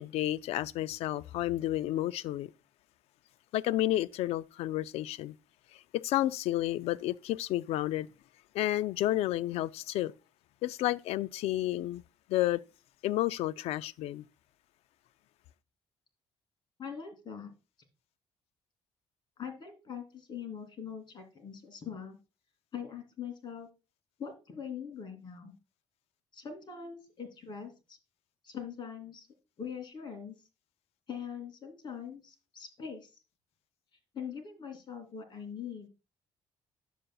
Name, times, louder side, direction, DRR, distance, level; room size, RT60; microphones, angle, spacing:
voice 1, 0.0-2.5 3.5-5.3 5.7-8.1 8.5-10.1 10.6-12.0 12.3-12.6 13.0-14.2, left 14 dB, 80° left, 0.4 m, -31 dB
voice 2, 16.8-17.5 19.4-22.2 22.7-23.7 24.2-25.5 26.3-28.0 28.4-29.3 29.6-30.4 31.1-33.1 34.1-35.9, left 7 dB, 50° left, 2.8 m, -42 dB
10.0 x 7.7 x 2.3 m
cardioid pair, 95°, 10 cm